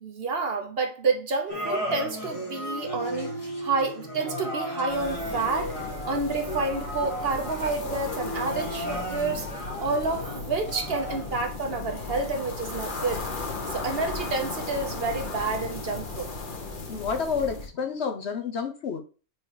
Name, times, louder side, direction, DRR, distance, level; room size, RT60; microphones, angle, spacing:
voice 1, 0.0-5.8 6.1-13.3 13.7-16.3, right 3 dB, 50° right, 0.8 m, -29 dB
sound 1, 1.5-11.4, equal, 20° left, 1.4 m, -35 dB
sound 2, 4.9-17.7, left 3 dB, 35° left, 0.9 m, -36 dB
voice 2, 16.9-19.0, left 6 dB, 65° left, 0.7 m, -29 dB
4.7 x 4.6 x 4.7 m
omnidirectional pair, 1.9 m